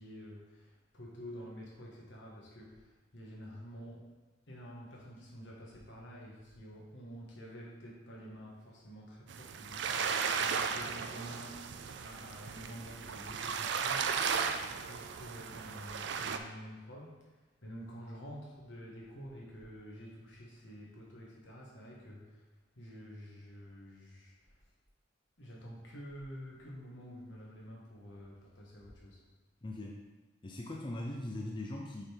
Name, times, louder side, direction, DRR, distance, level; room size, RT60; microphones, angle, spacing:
voice 1, 0.0-4.1 4.5-11.7 12.0-14.3 14.6-22.4 22.7-24.6 25.4-29.3, equal, 75° left, -3 dB, 1.5 m, -49 dB
sound 1, 9.3-16.4, right 6 dB, 65° right, 0.4 m, -35 dB
voice 2, 29.6-30.0 30.4-32.0, left 1 dB, 25° left, -1 dB, 0.5 m, -40 dB
6.5 x 3.9 x 4.5 m, 1.2 s
head